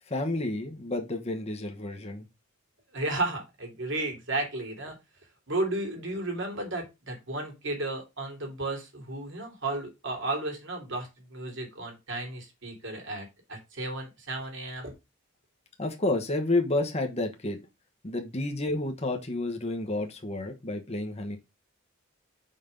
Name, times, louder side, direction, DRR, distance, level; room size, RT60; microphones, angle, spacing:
voice 1, 0.1-2.2 15.8-17.6 18.0-21.4, left 2 dB, 30° left, 1.2 m, -30 dB
voice 2, 2.9-4.9 5.5-14.9, right 2 dB, 60° right, 3.1 m, -33 dB
5.7 x 5.5 x 5.2 m
head